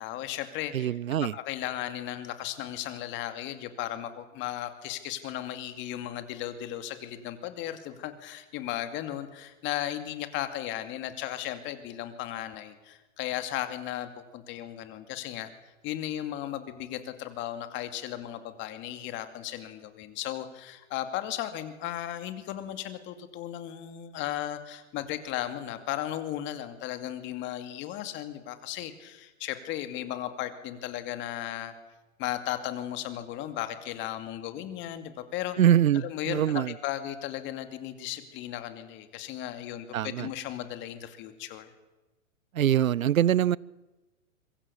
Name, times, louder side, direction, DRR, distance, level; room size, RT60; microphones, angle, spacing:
voice 1, 0.0-0.9 1.3-15.5 15.8-31.7 32.2-35.6 35.9-41.7, left 12 dB, 30° left, 9 dB, 2.5 m, -36 dB
voice 2, 0.7-1.3 35.6-36.7 39.9-40.3 42.5-43.6, right 10 dB, 80° right, 25 dB, 0.7 m, -24 dB
25.5 x 23.5 x 7.1 m, 1.1 s
hypercardioid pair, 135°, 40 cm